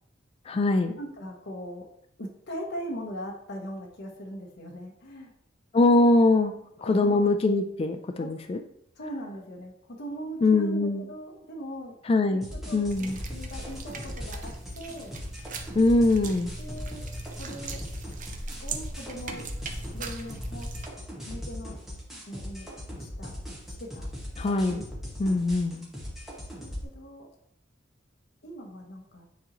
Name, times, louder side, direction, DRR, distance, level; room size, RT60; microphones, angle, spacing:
voice 1, 0.5-1.0 5.7-6.5 6.8-8.6 10.4-11.0 12.1-12.5 12.7-13.2 15.7-16.5 24.4-24.8 25.2-25.8, left 2 dB, 30° left, 7 dB, 0.3 m, -22 dB
voice 2, 1.0-1.9 2.2-5.3 6.8-7.2 8.2-8.3 9.0-12.0 12.3-12.8 13.3-15.2 16.6-17.1 17.3-17.8 18.6-19.5 19.9-20.7 21.3-21.8 22.3-22.7 23.0-23.4 23.8-24.1 24.4-24.5 26.6-27.3 28.4-29.3, equal, 60° left, 1 dB, 0.9 m, -40 dB
sound 1, 12.4-26.8, equal, ahead, 1.7 m, -39 dB
sound 2, 12.9-20.9, right 3 dB, 40° right, 0.7 m, -40 dB
9.3 x 3.8 x 3.0 m, 0.72 s
head